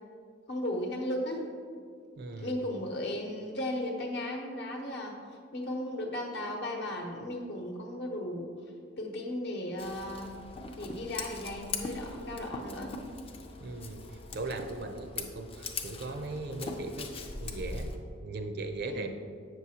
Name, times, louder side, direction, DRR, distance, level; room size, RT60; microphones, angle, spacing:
voice 1, 0.5-1.4 2.4-5.2 5.5-8.5 9.0-10.3 10.7-12.9 18.8-19.1, left 1 dB, 60° left, 1 dB, 0.9 m, -35 dB
voice 2, 2.2-2.6 13.6-17.1 17.4-17.9 18.2-19.1, right 2 dB, 55° right, 6 dB, 0.5 m, -38 dB
Scissors, 9.8-18.0, left 3 dB, 30° left, 0.4 m, -41 dB
7.7 x 6.1 x 2.8 m, 2.1 s
head